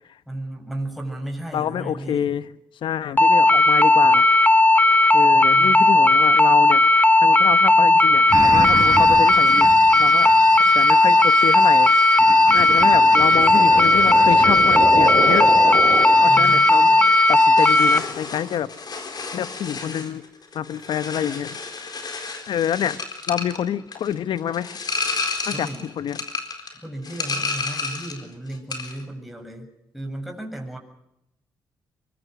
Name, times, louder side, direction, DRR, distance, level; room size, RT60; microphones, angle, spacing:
voice 1, 0.3-2.4 5.4-5.8 16.3-17.1 25.5-25.9 26.8-29.7 29.9-30.8, right 1 dB, ahead, 2 dB, 7.3 m, -34 dB
voice 2, 1.5-2.4 2.8-4.3 5.1-6.8 7.2-9.7 10.0-10.3 10.7-12.3 12.5-15.5 16.2-17.0 17.3-18.7 19.3-20.2 20.5-21.6 22.5-23.0 23.3-24.8 25.5-26.2, left 9 dB, 70° left, 15 dB, 1.0 m, -27 dB
sound 1, 3.2-18.0, left 2 dB, 15° left, 0.9 m, -15 dB
sound 2, 8.3-17.8, right 3 dB, 45° right, 4.6 m, -28 dB
sound 3, 17.6-28.3 28.5-29.0, left 4 dB, 50° left, 4.2 m, -31 dB
24.0 x 22.0 x 6.3 m, 0.84 s
hypercardioid pair, 50°, 9 cm